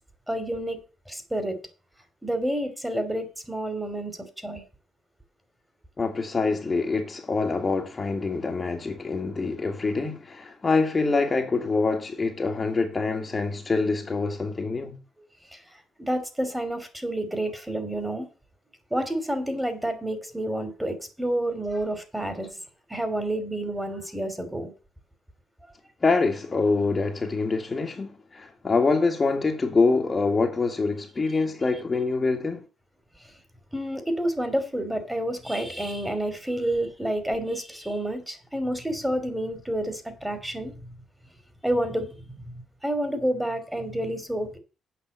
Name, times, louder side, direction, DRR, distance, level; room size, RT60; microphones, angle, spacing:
voice 1, 0.3-0.8 1.1-1.6 2.2-4.6 15.5-15.6 16.0-18.3 18.9-22.5 22.9-24.7 33.7-40.7 41.6-42.5 42.8-44.6, right 1 dB, 5° right, 2.8 m, -29 dB
voice 2, 6.0-15.0 26.0-32.6, left 3 dB, 30° left, 1.8 m, -25 dB
8.4 x 5.7 x 7.8 m
cardioid pair, 90°, 0 cm